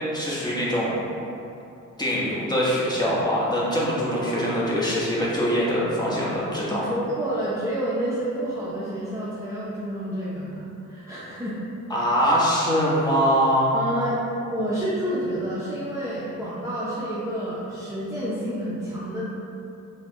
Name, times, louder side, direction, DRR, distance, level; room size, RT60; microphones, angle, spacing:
voice 1, 0.1-0.9 2.0-6.8 11.9-13.7, equal, 15° left, -7 dB, 1.1 m, -23 dB
voice 2, 6.7-11.6 13.7-14.2 14.5-19.2, right 1 dB, 10° right, -9 dB, 0.6 m, -29 dB
4.8 x 2.3 x 3.8 m, 2.8 s
cardioid pair, 90°, 30 cm